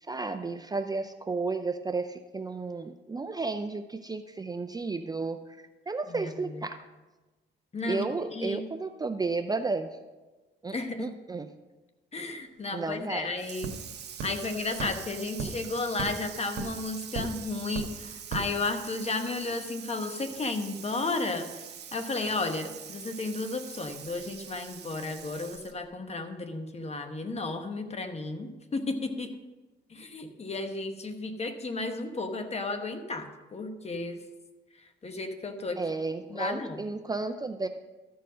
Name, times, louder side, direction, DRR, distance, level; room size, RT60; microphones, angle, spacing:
voice 1, 0.0-6.8 7.9-9.9 10.6-11.5 12.7-13.3 35.8-37.7, right 3 dB, 20° right, 8 dB, 0.4 m, -33 dB
voice 2, 6.1-6.6 7.7-8.0 8.3-8.6 10.7-11.1 12.1-13.7 14.2-21.5 21.9-29.3 29.9-34.2 35.0-35.8 36.3-36.8, left 3 dB, 30° left, 7 dB, 1.1 m, -33 dB
sound 1, 12.5-12.6 12.8-19.3, right 4 dB, 80° right, 1.4 m, -40 dB
Water tap faucet / Sink (filling or washing), 13.4-25.9, right 8 dB, 60° right, 1.0 m, -44 dB
13.0 x 4.6 x 6.2 m, 1.2 s
cardioid pair, 90°, 20 cm